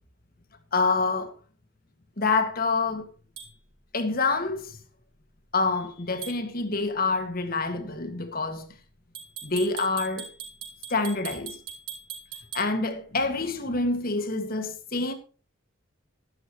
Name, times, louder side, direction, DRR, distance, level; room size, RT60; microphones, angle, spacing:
voice 1, 0.7-1.3 2.2-3.1 3.9-4.8 5.5-8.7 9.4-10.3 10.9-11.6 12.5-15.1, left 3 dB, 45° left, 1.8 m, -27 dB
sound 1, 3.4-3.5 6.2-6.4 9.1-12.7, right 7 dB, 65° right, 5.3 m, -40 dB
12.5 x 12.5 x 3.0 m
head